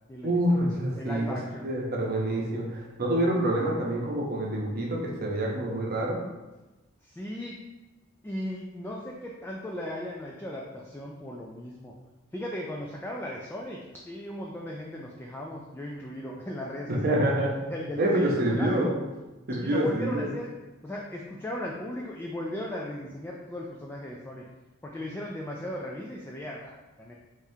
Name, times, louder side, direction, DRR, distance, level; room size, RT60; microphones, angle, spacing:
voice 1, 0.2-1.4 1.6-6.2 16.9-17.6 18.0-19.0 19.5-20.3, right 1 dB, 50° right, -2 dB, 0.8 m, -26 dB
voice 2, 1.0-1.7 7.0-7.6 8.2-11.9 12.3-13.8 14.1-17.3 17.7-18.8 19.6-20.5 20.8-24.4 24.8-27.1, left 1 dB, 10° left, -2 dB, 0.3 m, -37 dB
3.5 x 3.5 x 2.7 m, 1.1 s
head